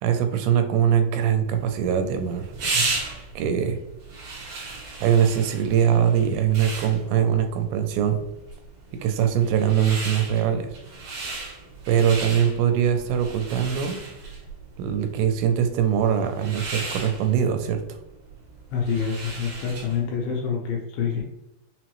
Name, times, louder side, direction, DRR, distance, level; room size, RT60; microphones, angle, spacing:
voice 1, 0.0-2.5 3.4-3.8 5.0-8.2 9.0-10.7 11.9-14.0 14.8-17.8, right 8 dB, 85° right, 6 dB, 2.5 m, -22 dB
sound 1, 1.5-20.1, right 3 dB, 65° right, 1.8 m, -35 dB
voice 2, 18.7-21.2, left 6 dB, 80° left, 0 dB, 2.3 m, -27 dB
6.0 x 2.0 x 3.0 m, 0.94 s
omnidirectional pair, 4.5 m